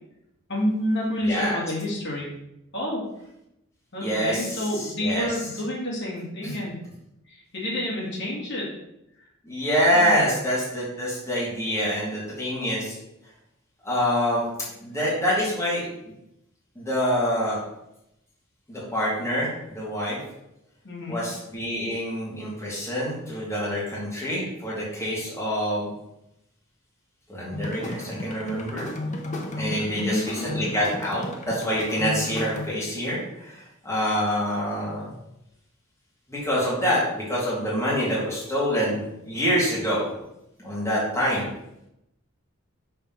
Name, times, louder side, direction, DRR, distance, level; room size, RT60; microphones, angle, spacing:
voice 1, 0.5-2.3 2.7-3.0 3.9-6.8 7.3-8.7 9.9-10.3 20.8-21.2 29.8-30.4, left 1 dB, 55° left, -5 dB, 2.0 m, -29 dB
voice 2, 1.2-1.6 4.0-5.3 6.4-6.5 9.4-13.0 13.8-14.5 14.8-15.9 16.8-17.6 18.7-20.2 21.1-25.9 27.3-28.9 29.6-35.1 36.3-40.1 40.6-41.4, equal, 15° left, -7 dB, 2.1 m, -26 dB
sound 1, 27.5-32.6, left 1 dB, 35° left, 0.9 m, -33 dB
5.6 x 3.6 x 5.8 m, 0.84 s
head